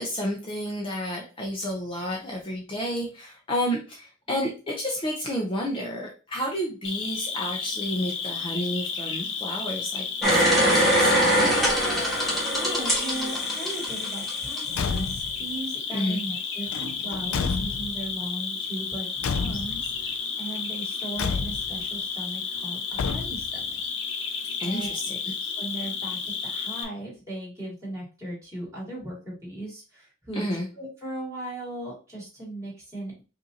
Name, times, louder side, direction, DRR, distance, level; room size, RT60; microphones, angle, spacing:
voice 1, 0.0-11.1 15.9-16.2 24.6-25.2 30.3-30.7, equal, 25° left, -1 dB, 0.7 m, -30 dB
Cricket, 6.8-26.8, left 5 dB, 55° left, 0.8 m, -32 dB
sound 1, 10.2-14.6 15.0-15.1, equal, ahead, 1.4 m, -22 dB
voice 2, 12.5-23.7 24.6-24.9 25.6-30.5 30.8-33.1, right 1 dB, 15° right, -7 dB, 2.4 m, -37 dB
Car / Truck / Slam, 14.7-15.4 16.7-18.1 19.2-20.0 21.2-21.8 22.9-23.6, left 5 dB, 80° left, 0.4 m, -30 dB
5.4 x 2.7 x 2.8 m, 0.34 s
head